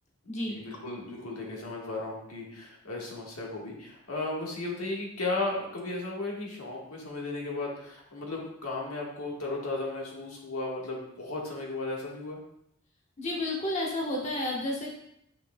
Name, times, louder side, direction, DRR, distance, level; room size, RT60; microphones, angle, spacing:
voice 1, 0.5-12.4, left 2 dB, 85° left, -2 dB, 1.5 m, -35 dB
voice 2, 13.2-14.9, left 1 dB, 30° left, -3 dB, 1.2 m, -31 dB
7.7 x 5.8 x 2.2 m, 0.75 s
head